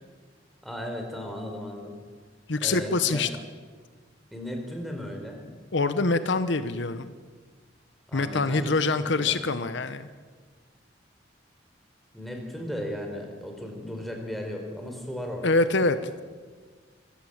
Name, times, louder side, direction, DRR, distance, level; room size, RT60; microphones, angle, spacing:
voice 1, 0.6-2.0 2.6-3.3 4.3-5.4 8.1-9.4 12.1-15.5, equal, ahead, 2 dB, 4.4 m, -36 dB
voice 2, 2.5-3.3 5.7-7.1 8.1-10.1 15.4-16.0, left 3 dB, 70° left, 12 dB, 1.0 m, -25 dB
26.0 x 15.0 x 8.8 m, 1.5 s
head